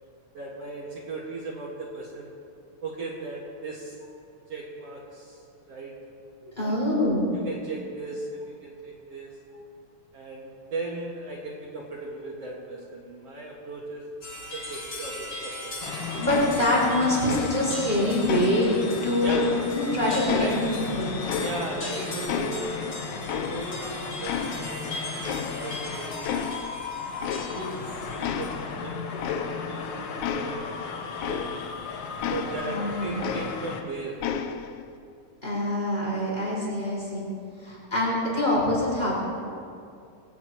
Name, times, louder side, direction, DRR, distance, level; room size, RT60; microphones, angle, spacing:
voice 1, 0.3-2.3 2.8-4.0 4.5-5.9 6.6-6.7 7.3-9.3 10.1-14.1 14.5-15.8 19.2-19.8 20.1-20.6 21.4-22.8 23.1-26.6 27.4-28.5 28.8-31.4 32.3-34.2, right 2 dB, 55° right, -4 dB, 2.7 m, -37 dB
voice 2, 6.4-7.3 16.1-18.8 19.0-20.7 21.0-21.2 32.6-33.2 35.4-37.3 37.6-39.2, left 1 dB, 15° left, -6 dB, 5.2 m, -25 dB
sound 1, 14.2-28.6, left 1 dB, 30° left, 3.3 m, -40 dB
sound 2, 15.8-33.8, left 5 dB, 65° left, 1.1 m, -36 dB
sound 3, 16.3-17.0 17.3-17.9 18.3-19.9 20.3-21.9 22.3-23.9 24.2-24.9 25.2-25.9 26.2-26.8 27.2-27.9 28.2-31.8 32.2-33.9 34.2-34.8, left 8 dB, 80° left, 2.0 m, -33 dB
23.5 x 17.5 x 3.0 m, 2.4 s
omnidirectional pair, 3.4 m